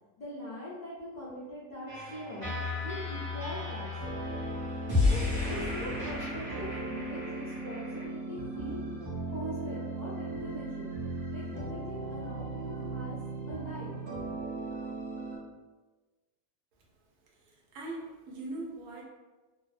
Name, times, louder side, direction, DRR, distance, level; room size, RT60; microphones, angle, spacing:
voice 1, 0.2-4.2 5.1-8.8 9.3-11.0 11.3-13.2 13.4-14.0, equal, 80° left, -10 dB, 0.4 m, -42 dB
sound 1, 1.9-8.1, left 3 dB, 30° right, 0.8 m, -33 dB
sound 2, 4.0-15.4, right 3 dB, 65° right, 0.6 m, -38 dB
voice 2, 17.4-19.0, right 2 dB, 85° right, -2 dB, 1.1 m, -41 dB
2.6 x 2.0 x 2.4 m, 1.2 s
omnidirectional pair, 1.6 m